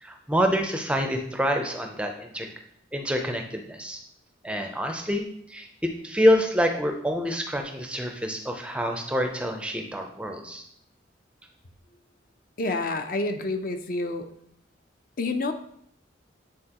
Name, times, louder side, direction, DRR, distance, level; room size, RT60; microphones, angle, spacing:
voice 1, 0.0-2.5 2.9-4.0 4.4-10.6, equal, 5° right, 4 dB, 0.5 m, -27 dB
voice 2, 12.6-14.3 15.2-15.5, left 2 dB, 50° left, 6 dB, 0.5 m, -28 dB
8.7 x 3.9 x 2.9 m, 0.70 s
head